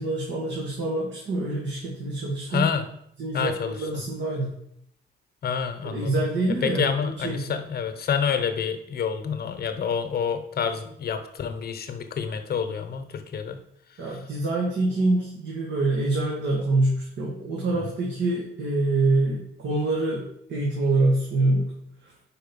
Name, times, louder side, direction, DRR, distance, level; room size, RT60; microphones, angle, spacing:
voice 1, 0.0-2.7 3.2-4.6 5.8-7.6 14.0-21.7 22.0-22.1, right 2 dB, 65° right, -3 dB, 1.7 m, -25 dB
voice 2, 2.5-2.9 3.3-3.8 5.4-6.2 6.6-13.6, left 7 dB, 50° left, 8 dB, 1.0 m, -28 dB
5.1 x 4.6 x 5.4 m, 0.72 s
cardioid pair, 90°, 20 cm